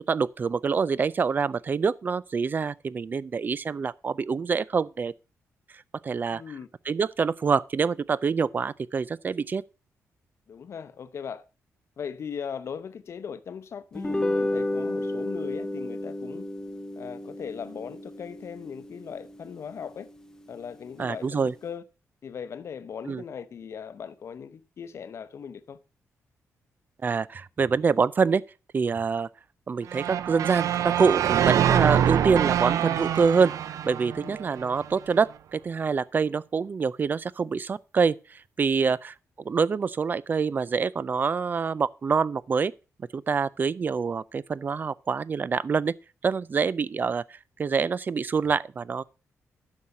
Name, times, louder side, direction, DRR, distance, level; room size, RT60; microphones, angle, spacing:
voice 1, 0.1-5.1 6.0-6.4 6.9-9.6 21.0-21.5 23.1-23.2 27.0-28.4 28.7-29.3 29.7-33.5 33.8-42.7 43.1-45.9 46.2-49.0, right 5 dB, 35° right, 0.4 m, -26 dB
voice 2, 6.3-6.7 10.5-11.4 12.0-16.5 17.0-20.1 20.5-21.8 22.2-25.8 34.1-34.4 38.8-38.9 46.5-46.7, left 7 dB, 55° left, 0.8 m, -39 dB
sound 1, 13.9-20.5, left 1 dB, 10° left, 0.7 m, -32 dB
sound 2, 29.9-34.9, right 10 dB, 85° right, 0.5 m, -25 dB
9.6 x 6.5 x 5.5 m
wide cardioid pair, 130°, 5 cm